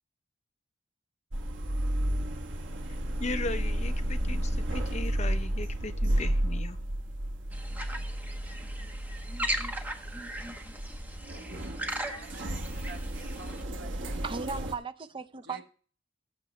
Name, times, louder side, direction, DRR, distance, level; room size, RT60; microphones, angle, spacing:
sound 1, 1.3-14.7, right 1 dB, 90° right, 1.2 m, -32 dB
voice 1, 3.2-6.8, left 2 dB, 35° left, 0.7 m, -37 dB
sound 2, 7.5-13.6, right 1 dB, 10° right, 0.9 m, -38 dB
voice 2, 11.8-12.4 12.9-14.3 15.4-15.6, right 2 dB, 65° right, 1.3 m, -50 dB
voice 3, 14.2-15.6, right 4 dB, 30° right, 0.5 m, -36 dB
14.0 x 7.6 x 3.2 m
head